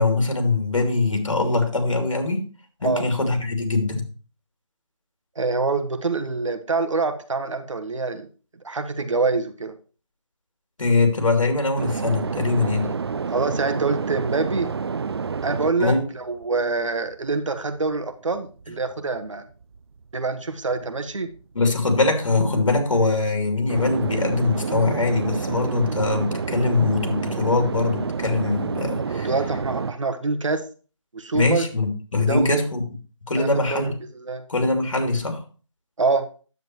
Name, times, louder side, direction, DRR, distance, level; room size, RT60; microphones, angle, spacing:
voice 1, 0.0-2.5 2.8-4.1 10.8-12.9 15.8-16.0 21.5-29.3 31.3-32.8 33.3-33.9 34.5-35.4, left 3 dB, 70° left, 4 dB, 2.7 m, -22 dB
voice 2, 5.4-8.3 8.6-9.7 13.3-14.7 15.4-19.4 20.1-21.3 29.0-30.6 31.1-31.6 32.2-32.6 33.3-34.4 36.0-36.2, right 3 dB, 70° right, 8 dB, 1.3 m, -25 dB
sound 1, 11.8-18.0 18.3-29.9, right 5 dB, 50° right, 0.4 m, -29 dB
9.5 x 7.9 x 3.0 m, 0.38 s
figure-of-eight pair, 165°, 17 cm